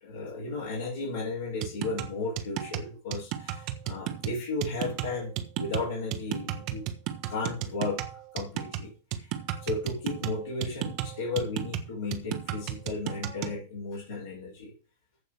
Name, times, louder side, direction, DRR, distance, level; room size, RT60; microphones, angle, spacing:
voice 1, 0.0-6.9 7.3-8.0 8.3-9.3 9.6-14.7, left 3 dB, 65° left, -7 dB, 4.7 m, -34 dB
sound 1, 1.6-13.6, right 11 dB, 45° right, 1.2 m, -34 dB
15.0 x 5.4 x 5.0 m, 0.34 s
figure-of-eight pair, 90°, 0 cm